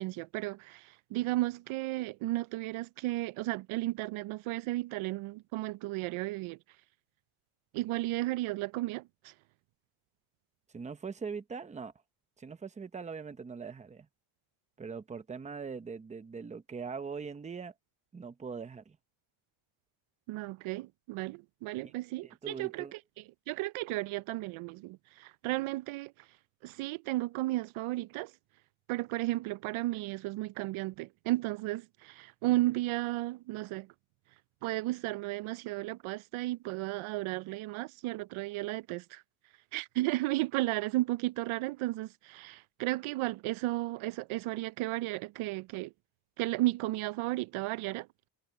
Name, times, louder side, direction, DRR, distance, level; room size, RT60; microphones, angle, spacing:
voice 1, 0.0-6.6 7.7-9.3 20.3-23.0 23.5-26.3 26.6-28.3 28.9-33.9 34.6-39.2 39.7-45.9 46.4-48.3, right 18 dB, 75° right, 0.6 m, -34 dB
voice 2, 10.7-11.9 12.4-14.1 14.8-17.7 18.1-19.0 21.8-21.9 22.2-23.0, right 5 dB, 15° right, 0.8 m, -41 dB
cardioid pair, 165°, 49 cm